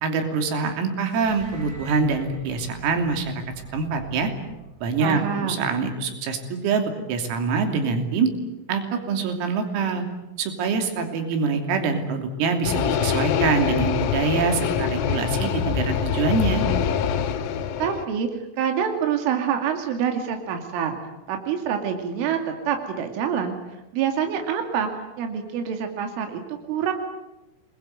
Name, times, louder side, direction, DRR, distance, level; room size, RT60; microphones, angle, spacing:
voice 1, 0.0-3.4 3.7-4.3 4.8-8.3 8.7-10.1 10.4-16.7, right 4 dB, 90° right, 5 dB, 5.7 m, -25 dB
sound 1, 1.1-5.5, right 3 dB, 40° right, 5.2 m, -42 dB
voice 2, 5.0-5.6 17.8-18.3 18.6-21.0 21.3-22.4 22.7-23.6 23.9-24.9 25.2-26.9, right 8 dB, 70° right, 4 dB, 4.9 m, -26 dB
sound 2, 12.6-18.1, left 7 dB, 85° left, 4.2 m, -24 dB
28.5 x 21.5 x 9.4 m, 0.96 s
omnidirectional pair, 5.9 m